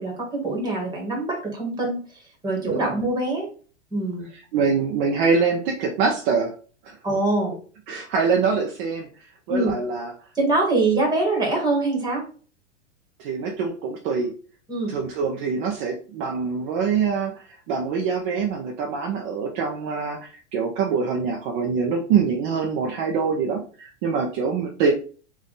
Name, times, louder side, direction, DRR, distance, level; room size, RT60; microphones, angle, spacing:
voice 1, 0.0-3.5 3.9-4.3 7.0-7.5 9.5-9.7 10.3-12.2 14.7-14.9, right 2 dB, 10° right, -1 dB, 1.6 m, -24 dB
voice 2, 2.6-3.0 4.5-6.5 6.8-7.0 7.9-9.1 9.5-10.1 13.2-14.4 14.9-24.9, right 5 dB, 45° right, 1 dB, 0.7 m, -24 dB
3.6 x 2.6 x 3.8 m, 0.40 s
supercardioid pair, 140°, 36 cm